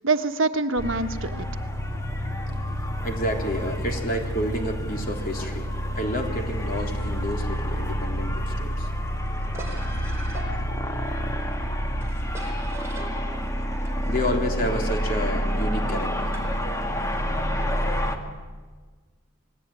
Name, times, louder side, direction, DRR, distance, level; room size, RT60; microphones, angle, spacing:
voice 1, 0.0-1.5, right 3 dB, 65° right, 8 dB, 1.3 m, -25 dB
sound 1, 0.8-18.2, equal, 15° left, 2.0 m, -28 dB
voice 2, 3.0-8.9 14.1-16.4 17.6-17.7, equal, 45° left, 2 dB, 3.7 m, -30 dB
sound 2, 6.8-17.1, right 1 dB, 15° right, 4.6 m, -45 dB
28.5 x 19.0 x 9.2 m, 1.5 s
head